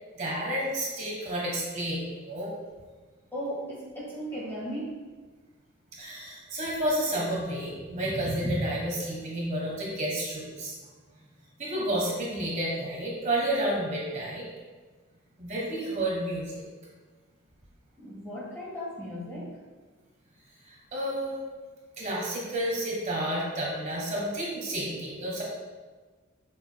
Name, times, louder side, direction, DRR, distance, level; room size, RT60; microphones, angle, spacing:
voice 1, 0.1-2.0 2.3-2.5 6.0-10.7 11.6-14.4 15.4-16.6 20.6-21.4 22.0-25.4, right 1 dB, 40° right, -4 dB, 1.3 m, -31 dB
voice 2, 3.3-5.0 18.0-19.6, equal, 15° left, -7 dB, 1.7 m, -36 dB
sound 1, 7.3-13.4, right 1 dB, 45° left, 1.8 m, -40 dB
6.8 x 6.1 x 2.3 m, 1.4 s
head